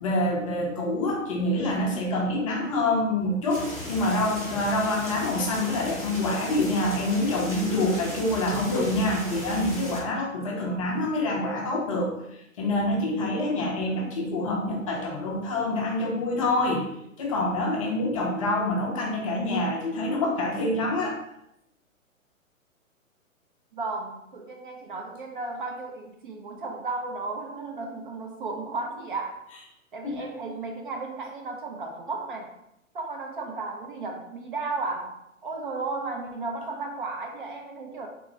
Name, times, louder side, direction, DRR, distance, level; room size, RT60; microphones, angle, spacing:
voice 1, 0.0-12.1 12.6-16.8 17.2-21.2 30.0-30.2, left 1 dB, 25° left, -1 dB, 0.5 m, -26 dB
sound 1, 3.5-10.0, left 1 dB, 5° right, 0.9 m, -37 dB
voice 2, 23.7-29.4 29.9-32.5 32.9-38.1, right 3 dB, 40° right, 3 dB, 0.4 m, -34 dB
3.6 x 2.8 x 2.5 m, 0.82 s
figure-of-eight pair, 115°, 41 cm